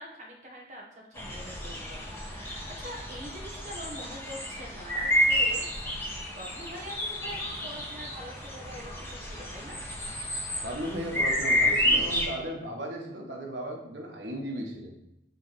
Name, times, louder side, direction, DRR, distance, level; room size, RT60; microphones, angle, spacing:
voice 1, 0.0-9.8, equal, 40° right, -1 dB, 1.4 m, -44 dB
sound 1, 1.1-12.2, equal, 15° left, 1.0 m, -30 dB
voice 2, 10.6-15.0, right 1 dB, 85° right, 1 dB, 1.3 m, -36 dB
8.0 x 3.3 x 4.3 m, 0.85 s
head